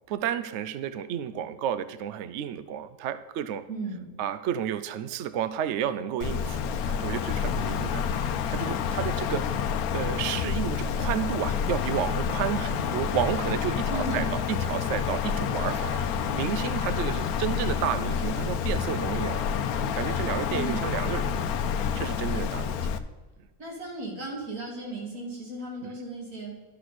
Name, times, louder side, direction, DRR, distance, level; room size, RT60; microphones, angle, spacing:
voice 1, 0.1-3.6 4.2-9.4 9.9-22.7 25.8-25.9, right 9 dB, 65° right, 13 dB, 0.7 m, -32 dB
voice 2, 3.7-4.1 13.9-14.3 20.5-20.9 23.6-26.6, right 2 dB, 85° right, -3 dB, 3.1 m, -35 dB
Wind, 6.2-23.0, left 7 dB, 85° left, 1.1 m, -28 dB
12.0 x 6.3 x 4.2 m, 1.3 s
omnidirectional pair, 1.5 m